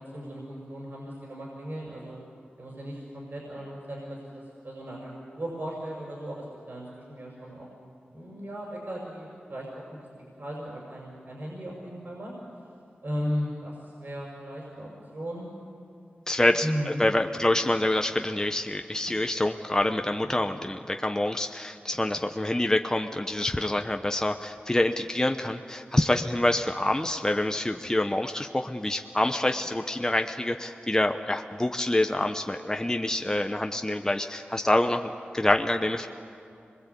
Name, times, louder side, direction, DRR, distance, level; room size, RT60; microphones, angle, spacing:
voice 1, 0.1-2.2 2.6-7.7 8.1-12.3 13.0-15.5 16.6-17.0 20.2-20.6, equal, 55° right, -2 dB, 5.8 m, -36 dB
voice 2, 16.3-36.1, left 1 dB, 15° left, 6 dB, 0.9 m, -26 dB
26.0 x 21.0 x 8.3 m, 2.6 s
cardioid pair, 55°, 4 cm